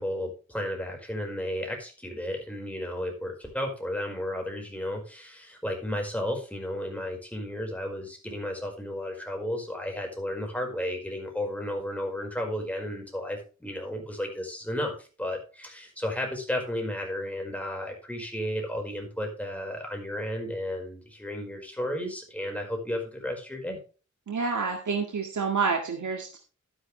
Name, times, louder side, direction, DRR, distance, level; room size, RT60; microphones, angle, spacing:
voice 1, 0.0-23.8, left 1 dB, 5° left, 1 dB, 4.9 m, -33 dB
voice 2, 24.3-26.4, right 5 dB, 70° right, 2 dB, 1.9 m, -28 dB
11.5 x 10.5 x 3.3 m, 0.35 s
wide cardioid pair, 100°, 31 cm